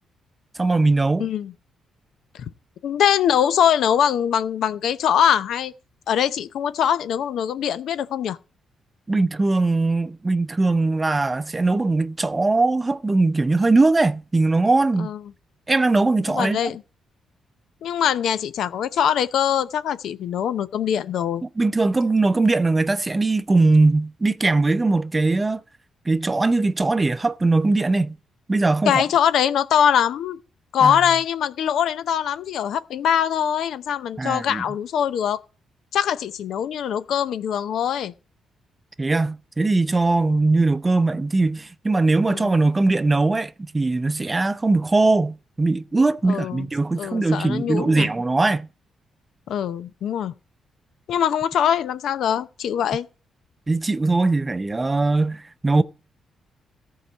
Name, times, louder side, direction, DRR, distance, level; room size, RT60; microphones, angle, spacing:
voice 1, 0.6-1.3 9.1-15.1 15.7-16.7 21.6-25.6 26.1-28.2 28.5-29.0 30.8-31.0 34.2-34.6 39.0-48.7 53.7-55.8, right 3 dB, 20° right, 0.6 m, -20 dB
voice 2, 1.2-1.5 2.3-2.4 2.8-5.7 6.1-8.4 15.0-15.2 16.3-16.8 17.8-21.4 28.9-30.4 30.7-35.4 35.9-38.1 42.3-42.5 46.3-46.7 47.0-48.1 49.5-50.3 51.1-53.1, left 9 dB, 75° left, 0.6 m, -22 dB
14.0 x 4.7 x 7.3 m
cardioid pair, 75°, 0 cm